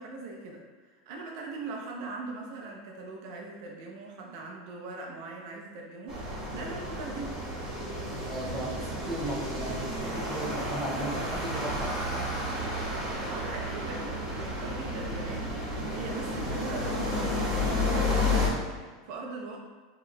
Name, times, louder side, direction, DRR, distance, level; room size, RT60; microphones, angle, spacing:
voice 1, 0.0-7.4 13.3-19.6, right 3 dB, 50° right, -1 dB, 0.6 m, -41 dB
sound 1, 6.1-18.5, left 1 dB, 25° right, 1.4 m, -31 dB
voice 2, 8.3-12.3, right 1 dB, 5° right, -6 dB, 0.5 m, -36 dB
4.5 x 3.0 x 2.3 m, 1.4 s
supercardioid pair, 170°, 2 cm